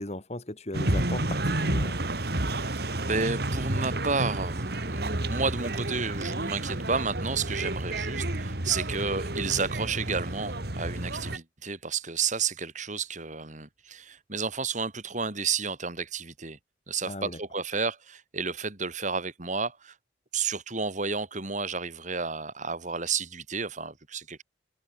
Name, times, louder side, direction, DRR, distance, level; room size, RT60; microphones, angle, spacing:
voice 1, 0.0-2.0 17.0-17.4, left 1 dB, 40° left, 3.0 m, -37 dB
sound 1, 0.7-11.4, right 1 dB, 60° right, 2.8 m, -30 dB
voice 2, 2.4-16.6 16.9-19.9 20.3-24.4, right 5 dB, 45° right, 3.0 m, -31 dB
head